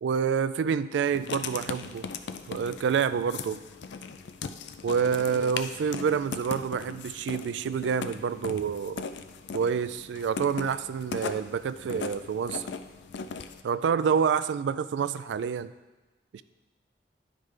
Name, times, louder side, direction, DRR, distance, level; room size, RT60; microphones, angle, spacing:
voice 1, 0.0-2.1 2.5-3.6 4.8-9.0 9.5-12.7 13.6-15.7 16.3-16.4, right 6 dB, 80° right, 14 dB, 0.3 m, -28 dB
Writing, 1.1-13.6, left 5 dB, 75° left, 0.4 m, -39 dB
10.5 x 5.1 x 3.2 m, 1.2 s
head